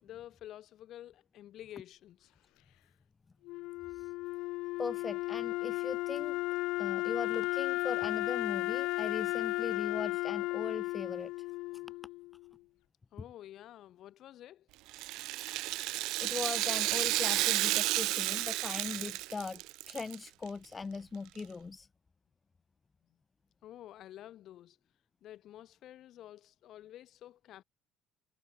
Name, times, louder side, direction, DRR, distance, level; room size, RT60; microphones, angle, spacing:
voice 1, 0.0-2.3 13.1-14.7 23.1-23.2 23.6-24.8 25.2-27.6, left 12 dB, 55° left, 3.5 m, -50 dB
Wind instrument woodwind instrument, 3.4-12.5, left 20 dB, 80° left, 0.6 m, -34 dB
voice 2, 4.8-6.4 6.8-11.3 16.2-21.9, left 4 dB, 20° left, 0.4 m, -40 dB
Rattle (instrument), 14.9-20.2 20.5-20.6 21.4-21.5, right 19 dB, 75° right, 0.4 m, -32 dB
cardioid pair, 150°, 0 cm